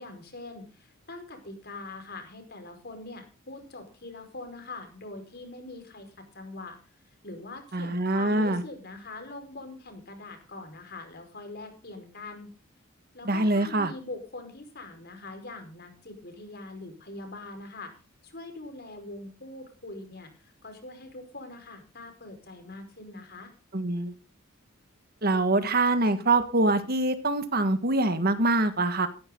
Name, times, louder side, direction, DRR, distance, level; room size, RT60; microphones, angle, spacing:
voice 1, 0.0-6.8 7.0-12.5 13.1-17.9 18.2-23.5, left 2 dB, 50° left, 6 dB, 5.2 m, -43 dB
voice 2, 7.7-8.6 13.2-13.9 23.7-24.1 25.2-29.1, right 2 dB, 45° right, 10 dB, 1.7 m, -24 dB
16.0 x 14.5 x 3.9 m, 0.34 s
head